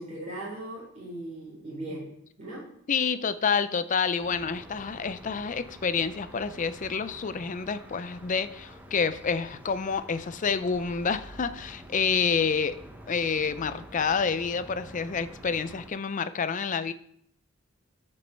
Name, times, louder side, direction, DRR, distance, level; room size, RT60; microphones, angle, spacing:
voice 1, 0.0-2.1 2.4-2.7, right 1 dB, 35° right, -7 dB, 4.7 m, -38 dB
voice 2, 2.9-12.8 13.1-16.9, left 5 dB, 40° left, 13 dB, 0.5 m, -28 dB
sound 1, 4.2-15.9, equal, 10° right, 1.0 m, -47 dB
13.0 x 5.4 x 4.5 m, 0.70 s
head